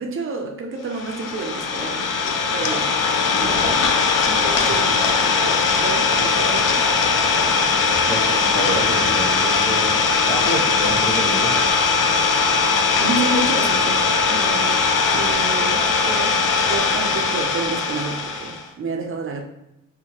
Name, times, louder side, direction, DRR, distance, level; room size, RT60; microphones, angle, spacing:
voice 1, 0.0-2.1 2.5-2.9 3.3-3.9 4.3-6.8 13.0-14.0 14.3-14.8 15.1-16.4 16.7-19.4, right 3 dB, 40° right, 3 dB, 0.5 m, -29 dB
Idling, 0.9-18.6, left 4 dB, 70° left, 0.5 m, -20 dB
voice 2, 3.3-3.9 7.9-11.6 12.0-12.3 15.0-15.2, right 1 dB, 15° left, -4 dB, 1.1 m, -29 dB
2.8 x 2.1 x 2.9 m, 0.89 s
cardioid pair, 75°, 34 cm